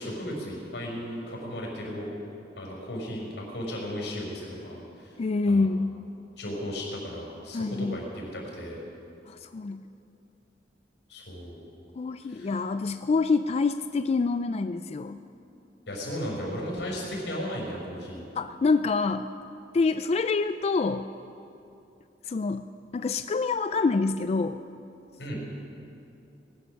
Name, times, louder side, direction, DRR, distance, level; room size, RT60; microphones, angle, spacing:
voice 1, 0.0-2.1 2.6-5.2 5.5-5.7 6.4-8.8 11.1-11.6 12.2-12.6 15.9-18.2 25.2-25.4, equal, 90° left, -2 dB, 4.7 m, -35 dB
voice 2, 5.2-6.0 7.5-8.0 9.3-9.8 12.0-15.2 18.4-19.3 19.7-21.1 22.2-22.7 22.9-24.6, left 4 dB, 35° left, 10 dB, 0.3 m, -26 dB
19.5 x 11.5 x 6.4 m, 2.7 s
head